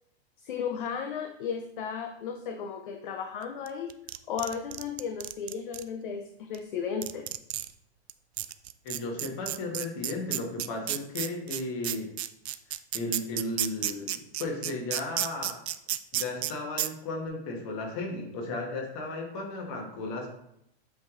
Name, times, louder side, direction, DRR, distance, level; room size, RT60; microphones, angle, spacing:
voice 1, 0.4-3.9 4.3-7.3, left 7 dB, 50° left, 6 dB, 0.5 m, -34 dB
sound 1, 3.7-5.8 6.5-6.6 7.0-7.7 8.1-8.2 8.4-16.5 16.8-16.9, right 13 dB, 70° right, 0.5 m, -31 dB
voice 2, 8.8-12.1 12.9-15.6 16.1-20.3, left 2 dB, 30° left, 1 dB, 1.3 m, -35 dB
8.0 x 3.2 x 3.6 m, 0.78 s
supercardioid pair, 175°, 33 cm